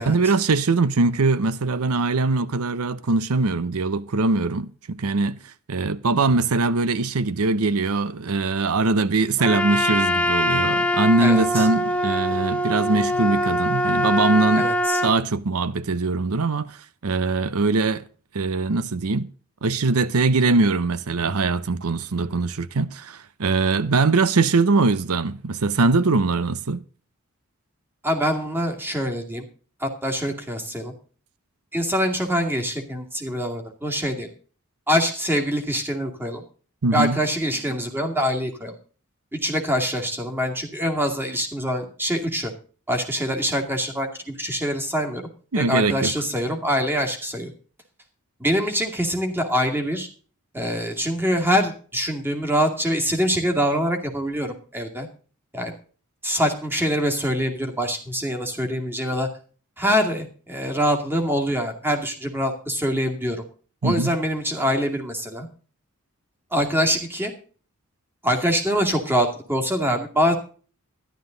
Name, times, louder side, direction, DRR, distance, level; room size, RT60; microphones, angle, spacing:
voice 1, 0.0-14.7 15.0-18.0 18.3-19.3 19.6-26.8 36.8-37.2 45.5-46.1 63.8-64.1, right 3 dB, 90° right, 0.7 m, -22 dB
Trumpet, 9.4-15.2, equal, 5° left, 1.2 m, -23 dB
voice 2, 11.2-11.7 14.6-15.0 28.0-29.4 29.8-30.9 31.7-34.3 34.9-36.4 36.9-38.7 39.3-42.5 42.9-45.3 45.6-47.5 48.4-50.1 50.5-55.1 55.5-55.7 56.2-59.3 59.8-63.4 63.8-65.5 66.5-67.3 68.2-70.3, equal, 10° right, 2.3 m, -24 dB
13.0 x 11.5 x 3.9 m
head